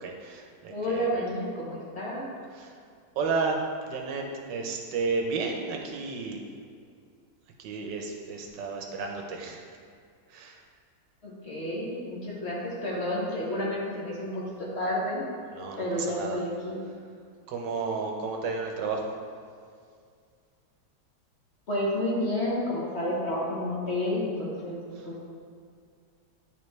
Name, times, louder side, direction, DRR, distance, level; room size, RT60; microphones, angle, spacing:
voice 1, 0.0-1.1 2.5-2.7 3.1-3.6 3.9-6.4 7.6-9.6 10.3-10.6 15.5-16.4 17.5-19.1 24.9-25.0, right 4 dB, 85° right, 1 dB, 1.5 m, -32 dB
voice 2, 0.7-2.3 11.2-15.2 15.8-16.8 21.7-24.8 25.0-25.2, left 1 dB, 45° left, -5 dB, 1.2 m, -30 dB
9.8 x 3.9 x 3.2 m, 2.2 s
omnidirectional pair, 1.9 m